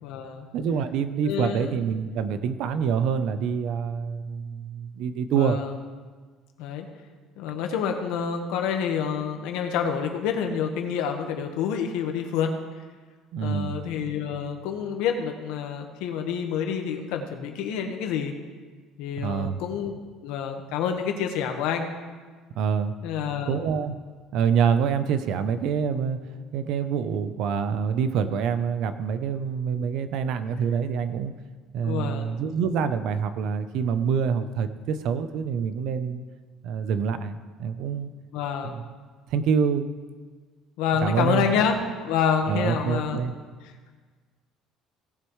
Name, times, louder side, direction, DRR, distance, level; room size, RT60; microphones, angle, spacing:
voice 1, 0.0-0.5 1.3-1.7 5.3-5.7 6.6-6.9 7.4-12.5 13.4-18.3 19.0-19.9 20.2-21.9 23.0-23.6 31.8-32.4 38.3-38.7 40.8-43.3, left 7 dB, 85° left, 4 dB, 1.3 m, -28 dB
voice 2, 0.5-5.6 13.3-13.8 19.2-19.6 22.5-22.9 23.5-24.0 24.3-31.3 31.7-36.2 36.6-38.1 38.6-38.8 39.3-39.9 41.0-41.5 42.5-43.3, right 7 dB, 60° right, 11 dB, 0.7 m, -26 dB
17.5 x 7.8 x 3.2 m, 1.5 s
cardioid pair, 160°, 0 cm